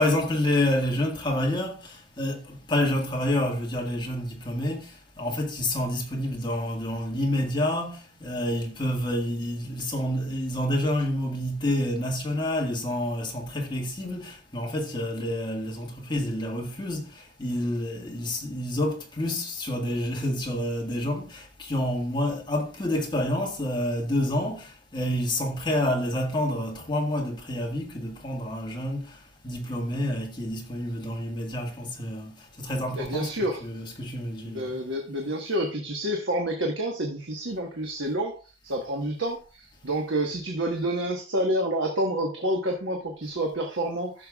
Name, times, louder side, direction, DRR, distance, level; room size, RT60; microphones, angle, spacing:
voice 1, 0.0-29.2 29.4-33.3 33.6-34.8, left 1 dB, 25° left, 1.6 m, -28 dB
voice 2, 32.9-33.6 34.4-44.3, right 1 dB, 65° right, 1.2 m, -29 dB
14.5 x 6.7 x 2.3 m
head